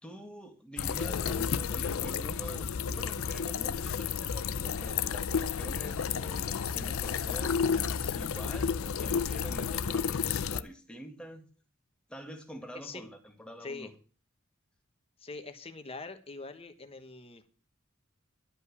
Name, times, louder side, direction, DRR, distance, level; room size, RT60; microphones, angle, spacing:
voice 1, 0.0-11.5 12.1-13.9, equal, 5° left, 3 dB, 1.8 m, -46 dB
sound 1, 0.8-10.6, left 6 dB, 85° left, 0.5 m, -31 dB
voice 2, 15.2-17.5, left 3 dB, 30° left, 8 dB, 1.2 m, -43 dB
12.0 x 5.4 x 8.3 m, 0.39 s
head